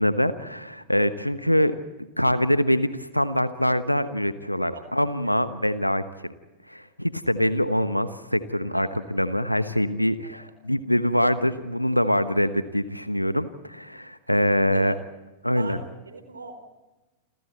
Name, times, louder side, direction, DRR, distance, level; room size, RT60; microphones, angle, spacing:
voice 1, 0.0-1.7 2.2-6.3 6.7-14.9 15.4-15.8, equal, 90° left, 13 dB, 1.1 m, -24 dB
voice 2, 4.7-5.4 8.7-8.9 10.2-10.3 14.7-14.9 15.5-16.6, right 3 dB, 75° right, 9 dB, 4.4 m, -40 dB
28.5 x 26.5 x 4.3 m, 1.1 s
figure-of-eight pair, 90°, 0 cm